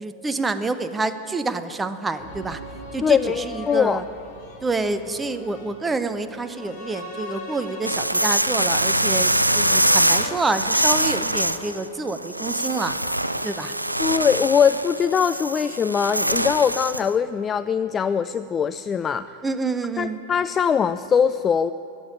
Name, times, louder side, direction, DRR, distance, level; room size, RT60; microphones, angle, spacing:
voice 1, 0.0-2.6 2.9-4.0 4.6-13.0 13.4-13.7 19.4-20.2, right 3 dB, 15° right, 11 dB, 0.7 m, -27 dB
sound 1, 2.2-12.3 12.6-12.7, left 2 dB, 45° left, 4.0 m, -39 dB
voice 2, 3.0-4.0 14.0-19.3 20.0-21.7, left 7 dB, 20° left, 12 dB, 0.3 m, -21 dB
sound 2, 7.8-17.1, right 1 dB, 85° right, 0.4 m, -23 dB
15.0 x 7.1 x 10.0 m, 2.7 s
figure-of-eight pair, 90°, 0 cm